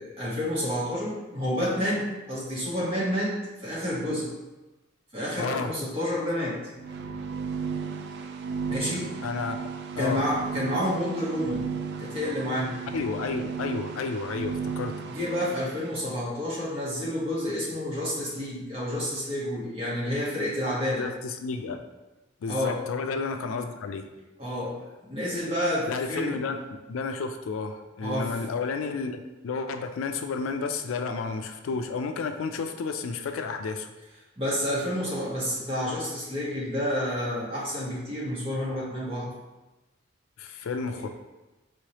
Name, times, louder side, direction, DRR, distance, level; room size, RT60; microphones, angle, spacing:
voice 1, 0.0-4.3 5.1-6.6 8.7-9.1 10.0-11.6 12.0-12.7 15.1-21.1 22.5-22.8 24.4-26.4 28.0-28.4 34.4-39.3 40.4-40.6 40.8-40.9, equal, 30° right, -7 dB, 1.3 m, -29 dB
voice 2, 5.4-5.7 9.2-10.2 12.9-15.1 21.0-21.8 22.4-24.1 25.9-33.9 40.4-41.1, left 4 dB, 80° left, 7 dB, 0.4 m, -32 dB
sound 1, 6.7-15.8, right 5 dB, 55° right, 0.3 m, -34 dB
4.5 x 3.1 x 2.9 m, 1.1 s
head